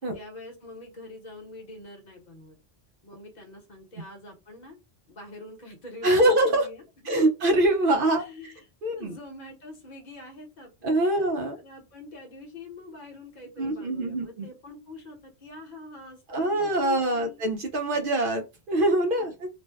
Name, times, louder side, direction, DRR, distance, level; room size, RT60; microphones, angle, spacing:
voice 1, 0.0-2.5 3.0-4.8 5.1-7.1 8.1-8.6 8.9-11.3 11.5-17.4 19.2-19.3, left 2 dB, 45° left, 2 dB, 0.9 m, -45 dB
voice 2, 6.0-6.7 7.1-8.5 8.8-9.2 10.8-11.6 13.6-14.5 16.3-19.5, right 1 dB, 60° right, 4 dB, 0.7 m, -24 dB
2.5 x 2.1 x 3.3 m, 0.27 s
omnidirectional pair, 1.1 m